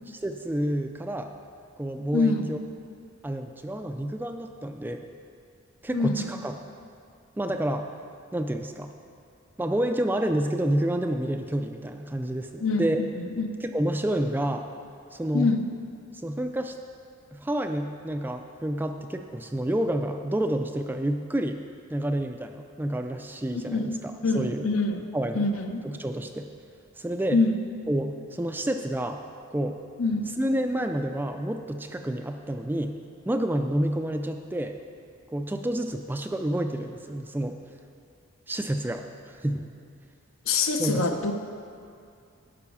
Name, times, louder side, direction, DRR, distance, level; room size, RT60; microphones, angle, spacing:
voice 1, 0.1-1.3 1.8-2.6 3.2-5.0 5.8-6.6 7.4-7.9 8.3-8.9 9.6-13.0 13.6-14.7 15.1-15.5 16.2-16.8 17.3-21.6 21.9-24.7 25.1-25.5 25.8-26.5 27.0-27.4 27.9-29.2 29.5-29.8 30.4-33.0 33.3-34.8 35.3-37.6 38.5-39.6 40.8-41.2, right 1 dB, 10° right, 6 dB, 0.3 m, -29 dB
voice 2, 2.1-2.4 5.9-6.4 12.6-13.5 15.3-15.6 23.5-25.0 25.3-25.8 27.3-27.6 30.0-30.2 40.5-41.3, left 3 dB, 70° left, 6 dB, 0.8 m, -25 dB
12.0 x 5.5 x 7.0 m, 2.4 s
head